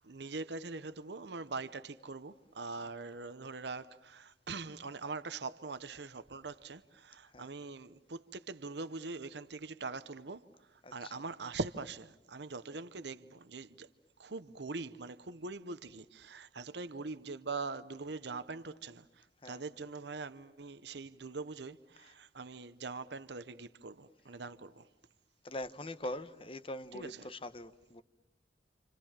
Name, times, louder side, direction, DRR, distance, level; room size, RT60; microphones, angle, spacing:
voice 1, 0.0-13.9 14.2-24.9 26.9-27.3, right 3 dB, 70° right, 0.9 m, -43 dB
voice 2, 25.4-28.0, left 1 dB, 30° left, 1.0 m, -42 dB
29.0 x 27.5 x 7.3 m
head